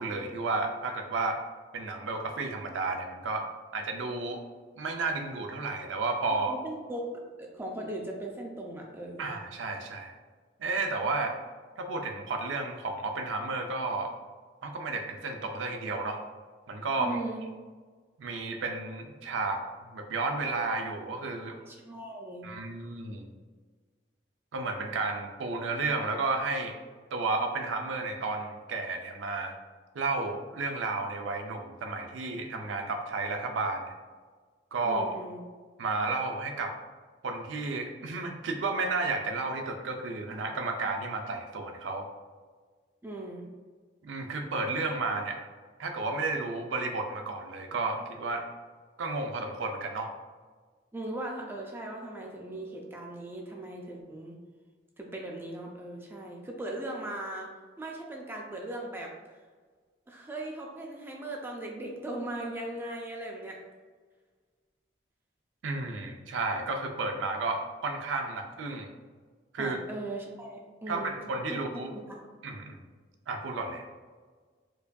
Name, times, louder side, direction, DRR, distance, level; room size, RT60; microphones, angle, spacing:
voice 1, 0.0-1.4 1.7-3.4 3.7-4.4 4.8-6.6 9.2-10.1 10.6-11.3 11.8-14.1 14.6-16.2 16.7-17.2 18.2-21.5 22.4-23.3 24.5-26.7 27.1-29.5 30.0-33.9 34.7-35.2 35.8-36.7 37.2-42.1 44.0-45.4 45.8-48.5 49.0-50.1 65.6-68.9 69.5-69.8 70.9-71.9 72.4-72.8 73.3-73.9, right 3 dB, 85° right, 4 dB, 0.4 m, -32 dB
voice 2, 6.5-7.0 7.4-9.3 17.0-17.4 21.7-22.5 34.8-35.4 43.0-43.5 50.9-54.4 55.0-57.5 57.8-59.1 60.1-63.6 69.6-71.1 71.5-71.6 72.1-72.3, right 1 dB, 10° right, 0 dB, 0.3 m, -38 dB
4.5 x 2.6 x 2.2 m, 1.5 s
head